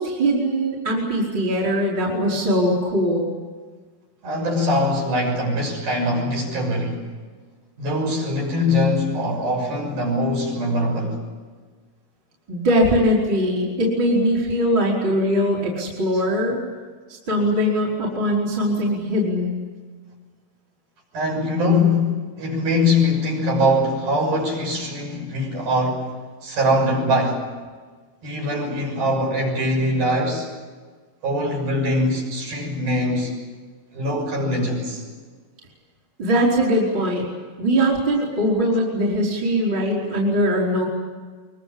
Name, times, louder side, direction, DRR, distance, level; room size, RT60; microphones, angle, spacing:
voice 1, 0.0-3.3 12.5-16.6 17.1-19.6 36.2-37.3 37.6-40.8, equal, 20° right, -3 dB, 5.0 m, -21 dB
voice 2, 4.2-7.1 7.8-11.2 16.1-16.2 21.1-26.1 26.4-27.4 28.2-30.5 31.2-33.3 33.9-35.0, left 1 dB, 45° right, 0 dB, 8.1 m, -22 dB
24.5 x 24.0 x 8.6 m, 1.5 s
omnidirectional pair, 5.8 m